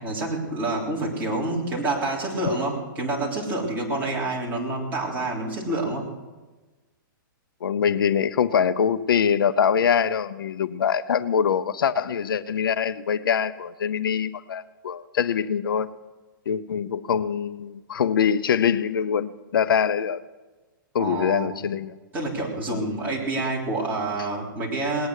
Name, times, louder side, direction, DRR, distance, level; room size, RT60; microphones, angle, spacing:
voice 1, 0.0-6.1 21.0-21.6 22.1-25.1, right 2 dB, 15° right, 3.6 m, -28 dB
voice 2, 7.6-15.9 16.5-20.2 20.9-21.9 22.7-22.9, left 7 dB, 80° left, 0.7 m, -24 dB
19.0 x 9.6 x 6.5 m
hypercardioid pair, 155°, 11 cm